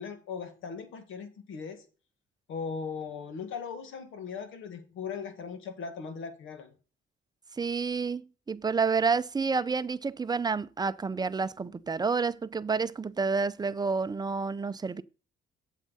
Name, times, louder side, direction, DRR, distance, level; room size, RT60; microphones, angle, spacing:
voice 1, 0.0-1.8 2.5-6.7, left 5 dB, 80° left, 2.0 m, -38 dB
voice 2, 7.6-15.0, right 5 dB, 20° right, 0.5 m, -29 dB
8.0 x 7.4 x 4.1 m
cardioid pair, 90°, 20 cm